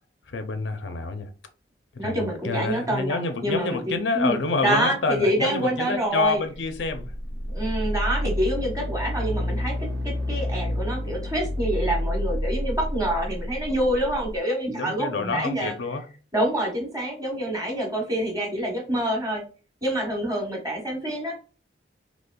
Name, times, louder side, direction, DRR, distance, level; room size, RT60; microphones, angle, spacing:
voice 1, 0.3-1.3 1.9-7.1 14.7-16.1, left 3 dB, 80° left, 0.5 m, -28 dB
voice 2, 2.0-4.4 4.6-6.4 7.5-9.8 10.0-15.7 16.3-19.4 19.8-21.3, right 1 dB, 20° right, 1.1 m, -27 dB
sound 1, 6.6-14.4, equal, 75° right, 0.8 m, -29 dB
4.1 x 2.9 x 2.3 m
head